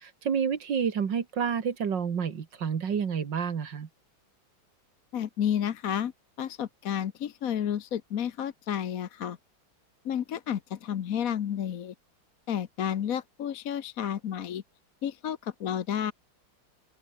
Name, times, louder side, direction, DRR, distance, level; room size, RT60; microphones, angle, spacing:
voice 1, 0.0-3.9, right 7 dB, 70° right, 2.4 m, -29 dB
voice 2, 5.1-6.1 6.4-9.4 10.0-11.9 12.5-14.6 15.0-16.1, left 9 dB, 55° left, 1.2 m, -31 dB
open air
omnidirectional pair, 2.1 m